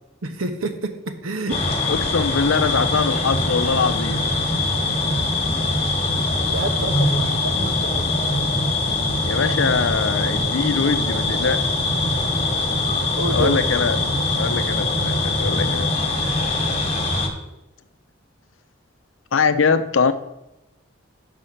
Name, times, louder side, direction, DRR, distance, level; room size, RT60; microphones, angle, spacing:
voice 1, 0.2-1.6 6.4-8.2 13.2-13.6, right 2 dB, 85° right, 7 dB, 0.9 m, -28 dB
sound 1, 1.5-17.3, left 2 dB, 30° left, 1.2 m, -22 dB
voice 2, 1.9-4.2 9.3-11.6 13.3-14.0 14.4-16.1 19.3-20.1, left 5 dB, 70° left, 11 dB, 0.5 m, -22 dB
5.6 x 5.5 x 6.4 m, 0.92 s
head